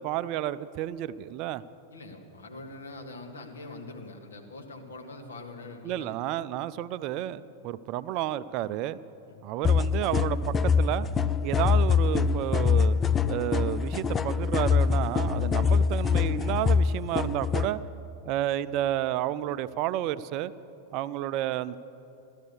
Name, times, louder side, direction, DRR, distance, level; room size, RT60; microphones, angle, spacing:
voice 1, 0.0-1.6 5.8-9.0 9.4-11.1 11.4-13.0 13.3-17.8 18.3-20.5 20.9-21.8, right 13 dB, 40° right, 15 dB, 0.4 m, -31 dB
voice 2, 1.9-6.1 9.3-9.4, left 2 dB, 70° left, 2 dB, 1.7 m, -43 dB
sound 1, 9.6-17.7, left 6 dB, 20° left, 0.4 m, -24 dB
14.5 x 12.5 x 6.8 m, 2.9 s
figure-of-eight pair, 90°, 0 cm